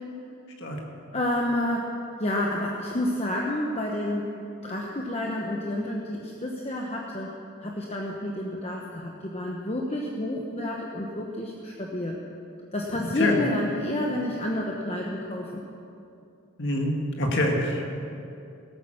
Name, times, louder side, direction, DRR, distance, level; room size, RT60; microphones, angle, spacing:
voice 1, 1.1-1.9 2.2-4.3 4.6-7.3 7.6-12.2 12.7-15.6, left 1 dB, 30° left, -1 dB, 1.0 m, -29 dB
voice 2, 16.6-18.0, left 1 dB, 55° left, 1 dB, 1.8 m, -25 dB
17.5 x 9.0 x 6.4 m, 2.6 s
head